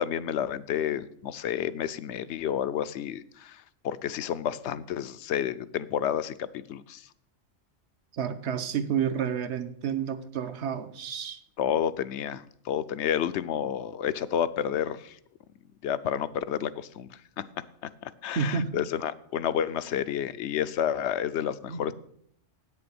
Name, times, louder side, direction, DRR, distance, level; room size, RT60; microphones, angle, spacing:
voice 1, 0.0-7.1 11.6-15.2 15.8-17.4 18.0-21.9, left 9 dB, 70° left, 0.8 m, -30 dB
voice 2, 8.1-11.4 18.4-18.7 21.7-21.9, right 7 dB, 65° right, 1.0 m, -30 dB
8.7 x 6.9 x 6.8 m
omnidirectional pair, 1.3 m